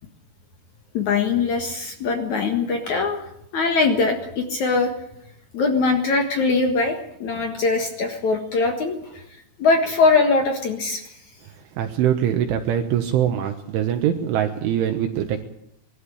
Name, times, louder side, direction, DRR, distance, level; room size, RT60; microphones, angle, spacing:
voice 1, 0.9-3.2 3.5-4.9 5.5-9.2 9.6-11.0, left 4 dB, 65° left, 5 dB, 1.8 m, -21 dB
voice 2, 11.8-15.4, right 10 dB, 75° right, 5 dB, 3.5 m, -23 dB
21.5 x 13.0 x 9.9 m, 0.76 s
omnidirectional pair, 6.0 m